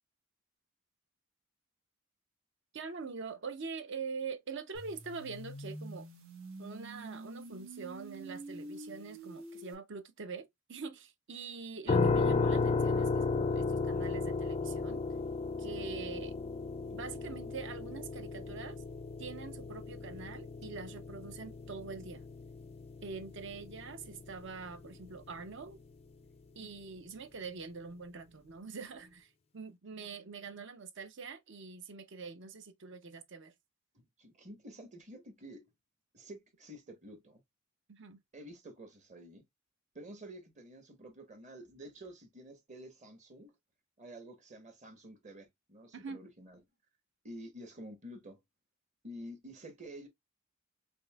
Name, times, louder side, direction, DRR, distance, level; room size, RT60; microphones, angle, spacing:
voice 1, 2.7-6.1 6.6-15.0 15.6-16.4 16.9-18.8 19.2-22.3 23.0-25.8 26.5-33.5 37.9-38.2 45.9-46.2, right 4 dB, 60° right, 0.7 m, -44 dB
sound 1, 4.7-9.7, right 1 dB, 85° right, 1.4 m, -47 dB
sound 2, 11.9-24.7, left 4 dB, 30° left, 0.3 m, -34 dB
voice 2, 33.9-35.6 36.1-37.4 38.3-39.4 39.9-43.5 44.0-46.6 47.2-48.4 49.0-50.1, right 1 dB, 35° right, 1.0 m, -50 dB
5.3 x 2.6 x 2.3 m
head